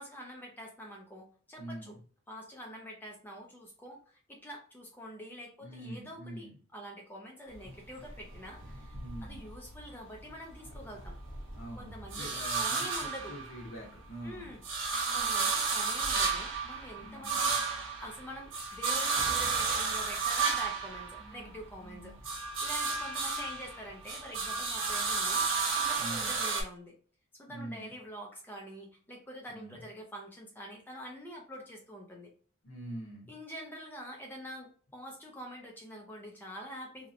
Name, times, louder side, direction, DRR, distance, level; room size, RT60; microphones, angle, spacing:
voice 1, 0.0-2.0 2.3-11.2 11.8-13.3 14.2-14.6 15.1-26.9 27.4-32.3 33.3-37.1, equal, 10° left, 0 dB, 0.3 m, -46 dB
voice 2, 1.6-2.0 5.6-6.5 9.0-9.5 11.5-14.5 17.0-17.5 21.2-22.2 26.0-26.4 27.5-27.9 29.5-29.8 32.6-33.3, right 1 dB, 75° left, -2 dB, 0.7 m, -45 dB
sound 1, 7.5-9.9 10.3-13.9 14.3-21.7 22.1-26.6, right 5 dB, 65° right, 0.6 m, -32 dB
2.7 x 2.0 x 2.5 m, 0.41 s
head